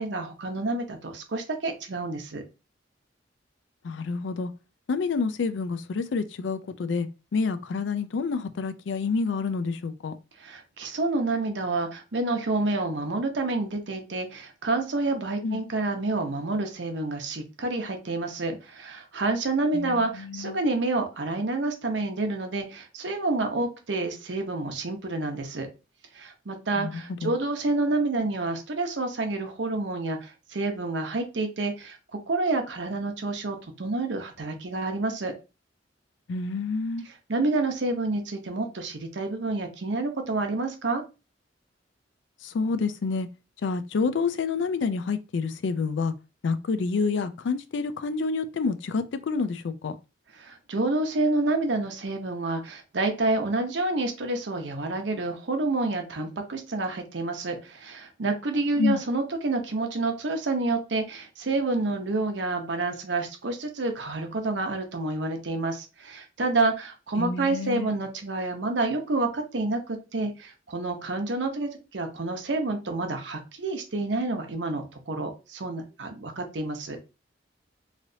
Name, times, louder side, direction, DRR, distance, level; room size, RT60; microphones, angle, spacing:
voice 1, 0.0-2.4 10.4-25.7 26.1-32.0 32.3-35.3 37.3-41.0 50.4-77.0, right 2 dB, 75° right, 0.8 m, -28 dB
voice 2, 3.8-4.5 4.9-10.1 15.4-15.6 19.7-20.6 26.8-27.3 36.3-37.1 42.4-43.3 43.6-46.1 46.4-50.0 58.8-59.0 67.2-67.9, left 4 dB, 80° left, 0.4 m, -28 dB
3.2 x 2.8 x 2.6 m
head